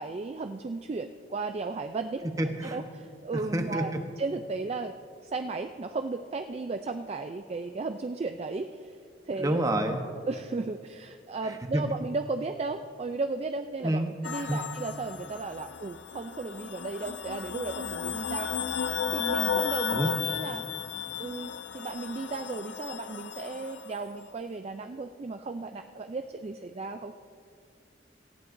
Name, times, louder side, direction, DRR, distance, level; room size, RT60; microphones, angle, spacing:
voice 1, 0.0-2.2 2.6-4.9 5.2-9.0 9.2-9.6 10.3-18.5 19.1-20.7 21.2-27.1, right 3 dB, 35° right, 7 dB, 0.3 m, -35 dB
voice 2, 2.2-2.8 3.5-4.0 9.4-10.0 11.4-11.8 13.8-14.1 14.4-14.6 19.9-20.1, right 1 dB, 20° right, 5 dB, 0.9 m, -28 dB
sound 1, 14.2-24.0, left 7 dB, 80° left, 0.5 m, -34 dB
18.5 x 14.5 x 2.6 m, 2.3 s
head